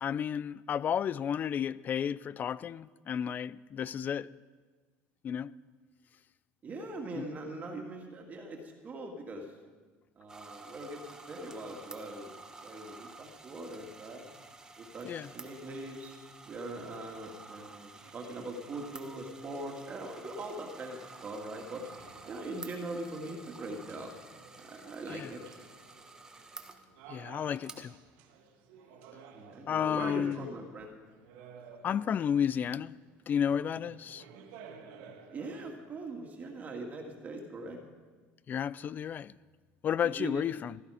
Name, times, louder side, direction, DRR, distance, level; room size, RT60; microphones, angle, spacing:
voice 1, 0.0-4.3 5.2-5.5 7.2-7.3 15.0-15.3 25.1-25.3 27.1-28.0 29.7-30.4 31.8-32.9 33.3-34.2 38.5-39.3 39.8-40.8, left 8 dB, 35° left, 0.4 m, -32 dB
voice 2, 6.6-9.5 10.2-11.0 11.3-14.4 14.8-16.1 16.5-21.8 22.2-24.1 24.6-25.4 29.3-30.9 35.3-37.8 40.0-40.4, right 2 dB, 30° right, 2.2 m, -41 dB
sound 1, 10.3-26.8 27.6-27.7, right 3 dB, 15° right, 1.3 m, -51 dB
sound 2, 17.9-36.1, right 6 dB, 80° right, 1.9 m, -55 dB
16.0 x 13.5 x 5.0 m
cardioid pair, 120°, 5 cm